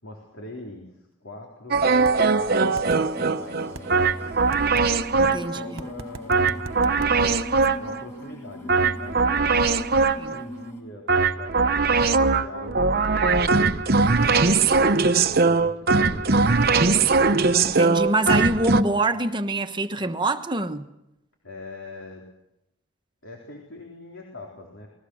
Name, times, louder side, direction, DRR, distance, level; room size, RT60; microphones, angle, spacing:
voice 1, 0.0-4.6 5.1-7.4 7.8-9.8 10.3-13.8 14.8-17.1 21.4-22.3 23.2-24.9, left 2 dB, 70° left, 4.0 m, -42 dB
sound 1, 1.7-5.6 6.3-8.0 8.7-10.4 11.1-18.8, right 4 dB, 50° right, 0.9 m, -20 dB
sound 2, 2.1-2.2 2.8-3.0 3.8-3.9 4.5-4.9 5.8-7.1, right 3 dB, 85° right, 1.0 m, -38 dB
sound 3, 2.4-10.8, equal, 10° left, 5.4 m, -41 dB
voice 2, 5.2-5.8 10.2-10.4 17.6-20.9, right 2 dB, 20° right, 1.1 m, -25 dB
28.5 x 20.0 x 6.4 m
head